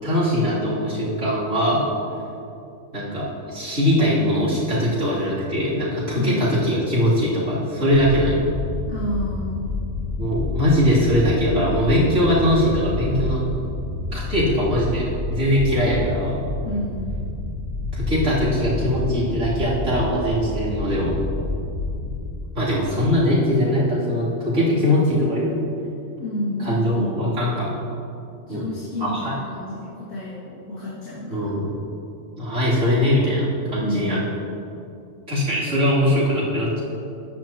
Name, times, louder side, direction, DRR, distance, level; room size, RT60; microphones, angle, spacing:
voice 1, 0.0-1.9 2.9-8.5 10.2-13.4 14.1-16.4 17.9-21.2 22.5-25.6 26.6-27.7 28.5-28.6 29.0-29.3 31.3-31.7 32.4-34.2 35.3-36.8, equal, 75° right, -9 dB, 3.5 m, -21 dB
voice 2, 6.1-6.5 8.9-9.7 16.6-17.0 26.2-27.3 28.5-31.6 33.8-34.3, left 1 dB, 85° left, -10 dB, 2.7 m, -30 dB
sound 1, 7.9-22.2, left 2 dB, 60° left, 2.8 m, -29 dB
14.5 x 10.5 x 2.9 m, 2.7 s
omnidirectional pair, 1.4 m